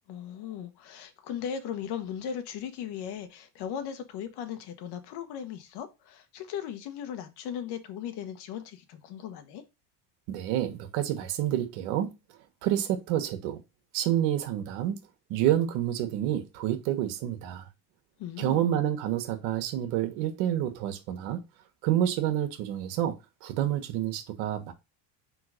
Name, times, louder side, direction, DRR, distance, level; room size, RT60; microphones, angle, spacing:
voice 1, 0.1-9.6 18.2-18.7, left 8 dB, 55° left, 1.4 m, -37 dB
voice 2, 10.3-12.1 12.6-13.6 13.9-15.0 15.3-17.7 18.4-21.4 21.8-24.7, right 11 dB, 70° right, 1.4 m, -28 dB
4.9 x 3.8 x 5.0 m
supercardioid pair, 120°, 47 cm